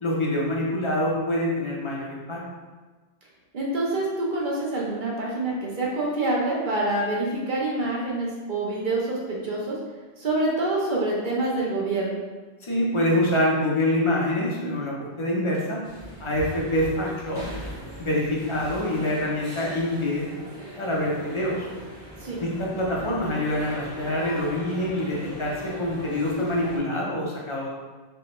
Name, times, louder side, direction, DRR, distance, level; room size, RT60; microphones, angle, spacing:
voice 1, 0.0-2.4 12.6-15.8 16.2-17.5 18.0-20.3 20.8-21.6 22.4-27.7, left 1 dB, 30° left, -3 dB, 0.7 m, -25 dB
voice 2, 3.5-9.8 10.2-12.2 22.2-22.4, right 2 dB, 50° right, -4 dB, 1.0 m, -26 dB
sound 1, 15.8-26.8, equal, 25° right, 0.9 m, -39 dB
3.3 x 3.3 x 3.0 m, 1.3 s
omnidirectional pair, 1.1 m